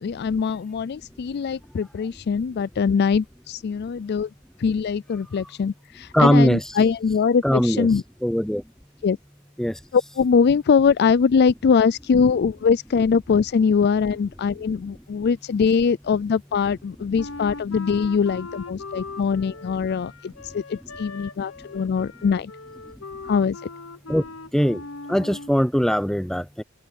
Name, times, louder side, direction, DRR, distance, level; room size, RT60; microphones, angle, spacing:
voice 1, 0.0-4.3 4.6-8.0 9.0-9.2 9.9-22.5 23.2-23.6, left 6 dB, 55° left, 0.4 m, -22 dB
voice 2, 6.1-6.6 7.4-7.9 8.2-8.6 9.6-9.8 24.1-24.3 24.5-26.6, equal, ahead, 0.7 m, -20 dB
Wind instrument woodwind instrument, 17.2-25.6, left 3 dB, 85° left, 1.0 m, -39 dB
open air
head